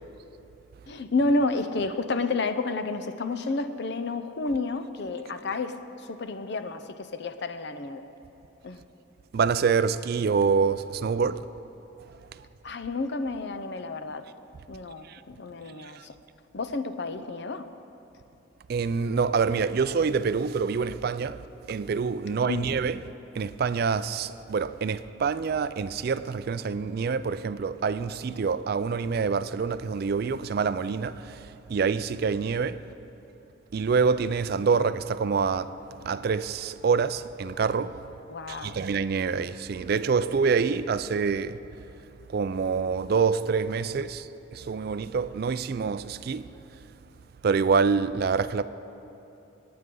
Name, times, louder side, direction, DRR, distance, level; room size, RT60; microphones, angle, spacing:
voice 1, 0.9-8.0 8.6-8.8 12.6-14.3 14.7-16.2 16.5-17.7 22.4-22.7 38.3-38.8, left 3 dB, 55° left, 0.6 m, -30 dB
voice 2, 9.3-11.4 18.7-21.4 21.7-23.0 23.4-31.2 31.7-32.8 33.7-35.7 36.0-37.9 38.5-41.6 42.3-44.2 44.5-46.5 47.4-48.6, right 5 dB, 50° right, 0.3 m, -26 dB
25.5 x 9.5 x 3.8 m
head